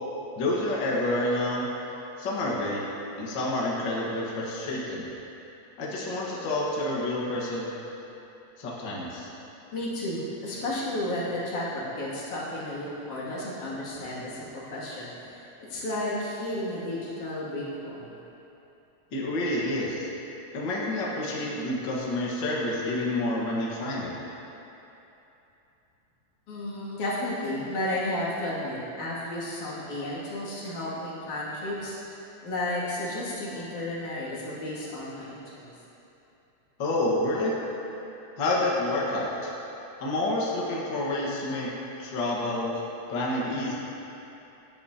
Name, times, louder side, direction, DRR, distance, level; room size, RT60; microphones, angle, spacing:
voice 1, 0.4-1.7 2.2-2.8 3.2-5.1 5.8-7.7 8.6-9.3 19.1-20.1 20.5-24.1 36.8-37.6 38.4-39.5 40.0-42.7 43.1-43.7, left 1 dB, 45° left, -4 dB, 1.9 m, -28 dB
voice 2, 9.7-15.4 15.7-18.1 26.5-32.0 32.4-35.7, left 1 dB, 80° left, -8 dB, 3.8 m, -32 dB
17.5 x 11.0 x 2.8 m, 3.0 s
omnidirectional pair, 3.4 m